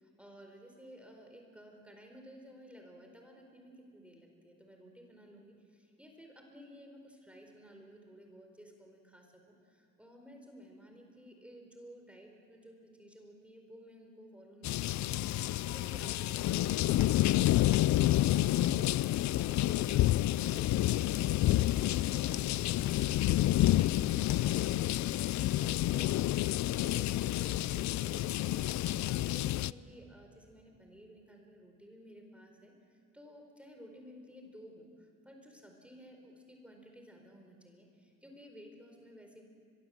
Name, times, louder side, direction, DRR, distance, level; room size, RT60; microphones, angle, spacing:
voice 1, 0.0-39.5, equal, 5° right, 2 dB, 4.4 m, -54 dB
sound 1, 14.6-29.7, left 15 dB, 70° left, 0.5 m, -29 dB
24.0 x 22.5 x 7.8 m, 2.3 s
cardioid pair, 90°, 30 cm